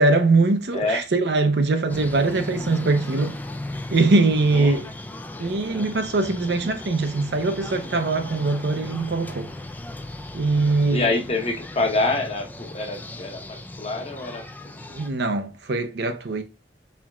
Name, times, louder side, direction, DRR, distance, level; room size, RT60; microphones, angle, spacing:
voice 1, 0.0-3.4 3.9-4.9 5.4-9.5 10.3-11.2 14.9-16.4, right 3 dB, 65° right, 0.6 m, -22 dB
sound 1, 1.9-15.1, left 1 dB, 10° left, 0.3 m, -37 dB
voice 2, 10.9-14.8, left 2 dB, 35° left, 0.9 m, -26 dB
4.5 x 3.5 x 2.3 m
head